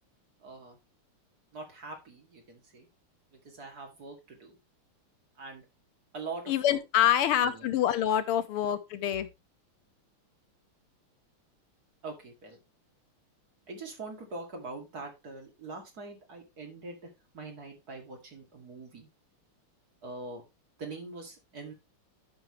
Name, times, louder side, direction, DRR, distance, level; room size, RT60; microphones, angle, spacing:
voice 1, 0.4-0.8 1.5-2.9 3.3-4.6 5.4-5.6 6.1-6.8 7.4-7.7 12.0-12.6 13.7-19.1 20.0-20.4 20.8-21.7, right 3 dB, 45° right, 2.6 m, -43 dB
voice 2, 6.5-9.3, left 11 dB, 85° left, 1.7 m, -26 dB
11.0 x 5.9 x 3.1 m
omnidirectional pair, 2.4 m